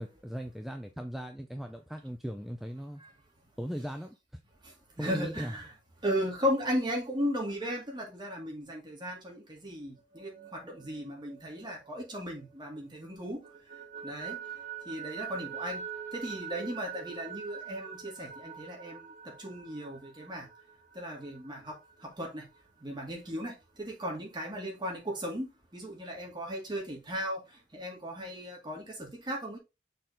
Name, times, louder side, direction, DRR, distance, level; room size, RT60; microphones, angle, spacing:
voice 1, 0.0-3.0 3.6-4.2 5.0-5.5, equal, ahead, 0.4 m, -38 dB
voice 2, 4.6-5.7 6.0-13.4 14.0-14.4 14.9-15.8 16.1-20.5 20.9-22.4 22.8-29.6, equal, 25° right, 2.2 m, -36 dB
sound 1, 10.0-12.8 13.2-22.6, right 7 dB, 45° right, 3.3 m, -44 dB
6.6 x 3.9 x 3.9 m
head